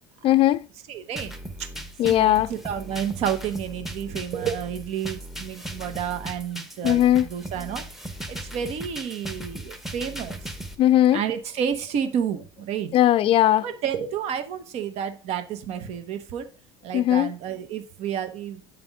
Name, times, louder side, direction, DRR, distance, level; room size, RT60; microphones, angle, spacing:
voice 1, 0.2-0.6 2.0-2.5 6.8-7.3 10.8-11.2 12.9-13.6 16.9-17.3, left 13 dB, 45° left, 0.4 m, -18 dB
voice 2, 0.9-1.3 1.6-1.7 2.0-7.8 8.3-10.5 11.1-12.9 13.6-16.4 16.8-18.6, right 8 dB, 55° right, 0.9 m, -30 dB
sound 1, 1.2-10.8, right 1 dB, ahead, 0.8 m, -37 dB
8.2 x 3.5 x 3.6 m
hypercardioid pair, 80°, 13 cm